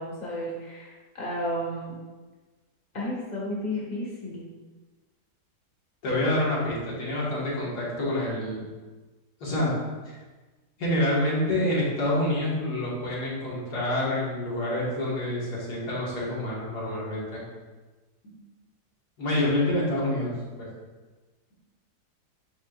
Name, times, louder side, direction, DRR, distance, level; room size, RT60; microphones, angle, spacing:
voice 1, 0.0-1.9 2.9-4.5, equal, 25° left, -6 dB, 1.8 m, -32 dB
voice 2, 6.0-8.7 9.4-9.7 10.8-17.4 19.2-20.3 20.6-20.7, left 1 dB, 75° left, -7 dB, 2.4 m, -27 dB
9.6 x 4.3 x 2.6 m, 1.3 s
omnidirectional pair, 1.7 m